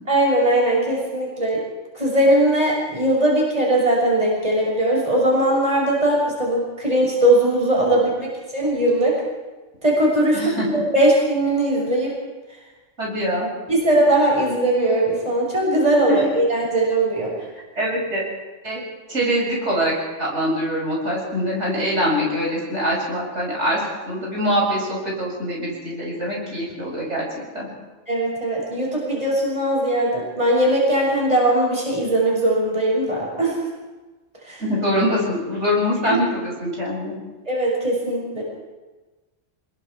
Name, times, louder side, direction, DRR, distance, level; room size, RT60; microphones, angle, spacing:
voice 1, 0.1-1.6 1.9-9.2 9.8-12.1 13.7-17.3 28.1-33.6 34.5-34.6 36.0-36.2 37.5-38.4, right 1 dB, 30° right, -3 dB, 6.8 m, -20 dB
voice 2, 10.3-10.7 13.0-13.5 16.1-16.2 17.7-18.2 18.6-18.8 19.1-27.3 27.5-27.7 34.6-37.1, equal, 70° right, -4 dB, 8.0 m, -23 dB
28.0 x 21.5 x 4.8 m, 1.2 s
omnidirectional pair, 1.2 m